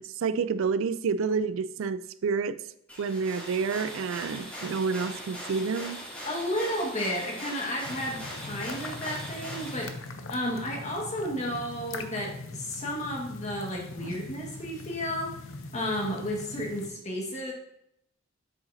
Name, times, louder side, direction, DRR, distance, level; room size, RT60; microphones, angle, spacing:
voice 1, 0.0-2.6 3.0-6.1 14.0-14.1, right 5 dB, 75° right, 0.4 m, -29 dB
sound 1, 2.9-9.8, equal, 5° left, 2.9 m, -40 dB
voice 2, 6.2-9.9 10.3-15.4 15.7-17.5, equal, 35° left, 1.8 m, -32 dB
sound 2, 7.8-16.9, left 3 dB, 80° left, 0.7 m, -41 dB
7.8 x 7.4 x 2.8 m
head